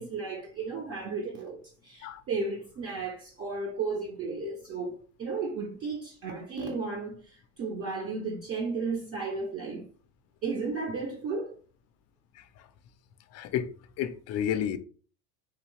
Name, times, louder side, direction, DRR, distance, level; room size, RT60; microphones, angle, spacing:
voice 1, 0.0-4.9 5.2-9.9 10.4-11.6, right 4 dB, 35° right, 0.7 m, -34 dB
voice 2, 12.3-12.7 13.3-14.8, left 9 dB, 45° left, 0.4 m, -32 dB
3.7 x 2.7 x 3.1 m
cardioid pair, 130°, 38 cm